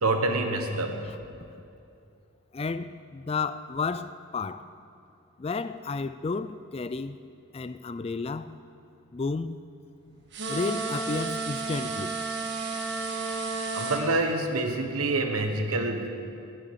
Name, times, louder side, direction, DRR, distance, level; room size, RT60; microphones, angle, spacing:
voice 1, 0.0-1.0 13.7-16.1, right 2 dB, 90° right, 1.3 m, -27 dB
voice 2, 2.5-4.7 5.4-7.2 7.5-8.6 9.1-9.6 10.5-12.2, left 4 dB, 25° left, 0.3 m, -32 dB
sound 1, 10.3-14.0, right 3 dB, 50° right, 1.6 m, -32 dB
19.5 x 7.6 x 8.1 m
head